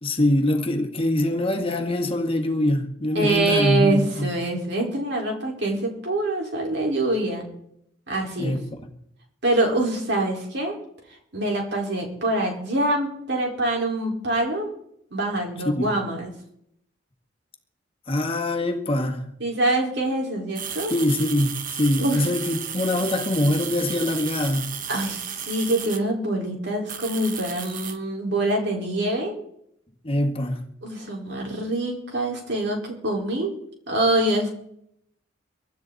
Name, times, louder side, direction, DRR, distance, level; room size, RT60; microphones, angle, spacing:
voice 1, 0.0-4.3 8.4-8.6 15.6-15.9 18.1-19.3 20.9-24.7 30.0-30.6, left 1 dB, 30° left, 1.7 m, -23 dB
voice 2, 3.1-7.4 8.1-8.6 9.4-10.8 11.3-14.7 15.1-16.3 19.4-20.9 22.0-22.3 24.9-29.4 30.8-33.5 33.9-34.5, right 1 dB, 60° right, 4.7 m, -25 dB
sound 1, 20.6-26.0 26.9-28.0, right 8 dB, 45° right, 1.2 m, -33 dB
24.0 x 12.0 x 4.1 m
head